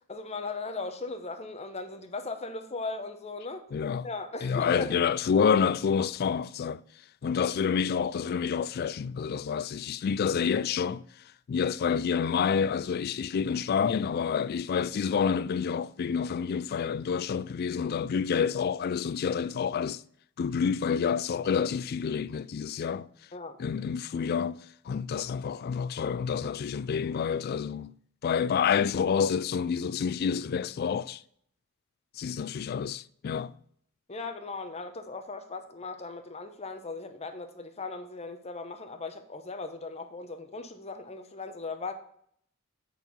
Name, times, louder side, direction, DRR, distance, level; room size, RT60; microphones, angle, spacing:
voice 1, 0.1-3.6 4.0-5.0 23.3-23.6 34.1-41.9, left 3 dB, 30° left, 0.8 m, -38 dB
voice 2, 3.7-4.1 4.4-6.8 7.2-11.0 11.5-20.0 20.4-23.1 23.6-24.6 24.9-27.9 28.2-31.2 32.2-33.5, left 6 dB, 45° left, 0.3 m, -28 dB
8.0 x 4.5 x 5.3 m
head